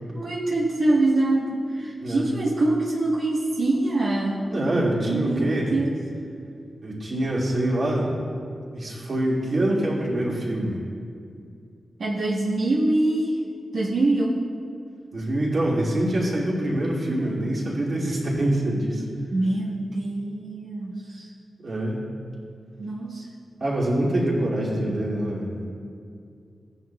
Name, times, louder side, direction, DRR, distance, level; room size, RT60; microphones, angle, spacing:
voice 1, 0.1-4.5 5.1-5.9 12.0-13.4 13.7-14.5 19.3-21.3 22.8-23.3, right 2 dB, 80° right, -6 dB, 1.3 m, -24 dB
voice 2, 4.5-5.7 6.8-8.1 8.7-10.8 15.1-19.0 21.6-22.0 23.6-25.6, right 1 dB, 50° right, -5 dB, 2.6 m, -25 dB
16.5 x 10.5 x 2.4 m, 2.4 s
wide cardioid pair, 145°, 0 cm